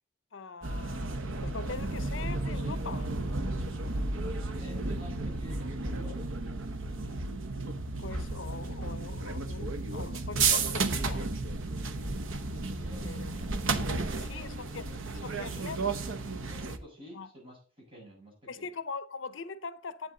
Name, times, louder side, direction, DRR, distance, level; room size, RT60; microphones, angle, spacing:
voice 1, 0.3-3.1 8.0-11.4 13.0-13.4 14.3-15.8 17.1-17.3 18.5-20.1, left 4 dB, 70° left, 0.7 m, -42 dB
sound 1, 0.6-16.8, right 3 dB, 85° right, 1.0 m, -33 dB
voice 2, 4.3-6.2 12.7-13.6 13.9-15.0 15.5-18.7, equal, 30° right, 6.9 m, -51 dB
10.5 x 8.2 x 3.9 m
head